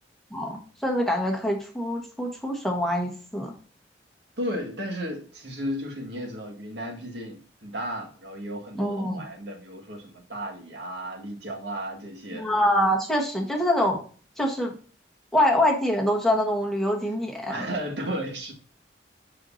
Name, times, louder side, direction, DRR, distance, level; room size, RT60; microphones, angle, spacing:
voice 1, 0.3-3.5 8.7-9.2 12.3-14.0 14.4-14.7 15.3-17.6, left 1 dB, ahead, 1.3 m, -25 dB
voice 2, 4.4-12.5 17.5-18.5, equal, 80° right, 1.8 m, -34 dB
7.1 x 6.3 x 2.7 m
head